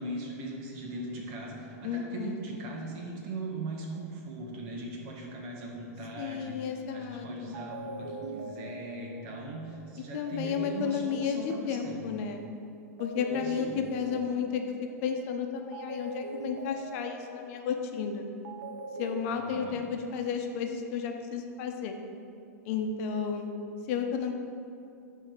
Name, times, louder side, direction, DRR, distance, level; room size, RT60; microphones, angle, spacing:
voice 1, 0.0-12.0 13.3-13.8 19.2-19.8, right 2 dB, 50° right, 0 dB, 1.9 m, -40 dB
voice 2, 1.8-2.4 6.2-7.6 10.1-12.4 13.0-18.3 19.0-22.0 22.7-23.5 23.9-24.3, left 6 dB, 55° left, 4 dB, 0.9 m, -32 dB
sound 1, 7.1-7.2 7.5-12.5 13.0-15.2 15.7-19.2, right 2 dB, 80° right, 1.1 m, -42 dB
9.6 x 3.7 x 6.9 m, 2.6 s
hypercardioid pair, 120°, 9 cm